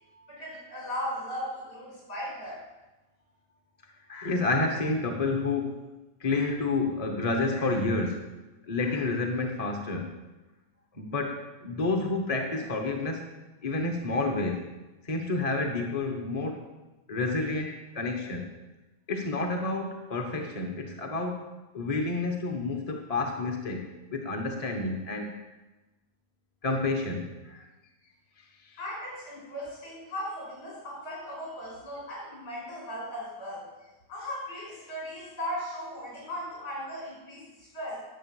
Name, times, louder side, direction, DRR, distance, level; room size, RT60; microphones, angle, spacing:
voice 1, 0.3-2.6 28.8-33.7 34.1-38.0, equal, 65° left, -4 dB, 6.0 m, -37 dB
voice 2, 4.1-5.8 6.2-8.2 8.6-10.2 11.0-13.3 13.6-14.6 15.0-16.6 17.1-18.5 19.1-21.5 21.7-25.3 26.6-27.7 28.6-28.8, left 3 dB, 25° left, 3 dB, 1.2 m, -29 dB
11.5 x 7.7 x 7.2 m, 1.1 s
omnidirectional pair, 1.9 m